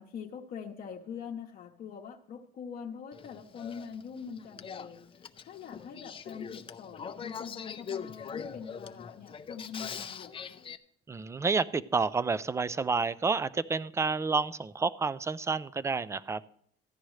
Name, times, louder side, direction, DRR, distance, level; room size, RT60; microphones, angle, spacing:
voice 1, 0.0-10.6, left 7 dB, 55° left, 1 dB, 0.9 m, -43 dB
Male speech man speaking / Female speech woman speaking / Conversation, 3.1-10.8, left 7 dB, 30° left, 0.6 m, -42 dB
voice 2, 11.1-16.4, right 4 dB, 15° right, 18 dB, 0.4 m, -29 dB
14.5 x 10.0 x 3.2 m, 0.64 s
cardioid pair, 105°, 18 cm